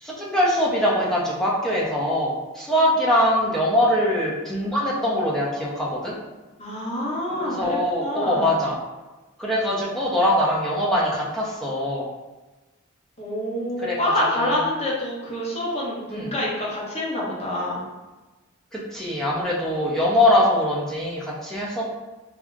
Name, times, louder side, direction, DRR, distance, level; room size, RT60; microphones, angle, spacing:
voice 1, 0.0-6.2 7.4-8.8 9.4-12.1 13.8-14.6 16.1-16.3 18.7-21.8, left 1 dB, ahead, -6 dB, 0.6 m, -22 dB
voice 2, 6.6-8.5 13.2-17.8, left 1 dB, 30° left, -6 dB, 0.9 m, -27 dB
3.6 x 2.0 x 3.4 m, 1.2 s
head